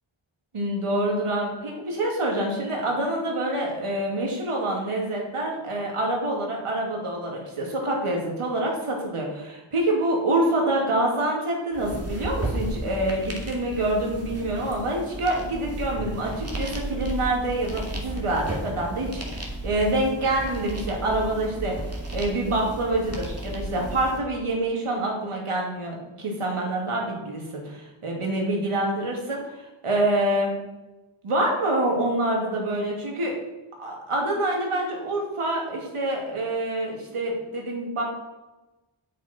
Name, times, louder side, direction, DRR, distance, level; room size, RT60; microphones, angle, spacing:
voice 1, 0.5-21.8 22.1-30.5 31.2-33.4 33.8-38.0, right 1 dB, 90° right, -1 dB, 2.7 m, -26 dB
sound 1, 11.7-24.2, right 1 dB, 30° right, 2.2 m, -34 dB
8.4 x 8.3 x 4.4 m, 1.0 s
wide cardioid pair, 75°, 50 cm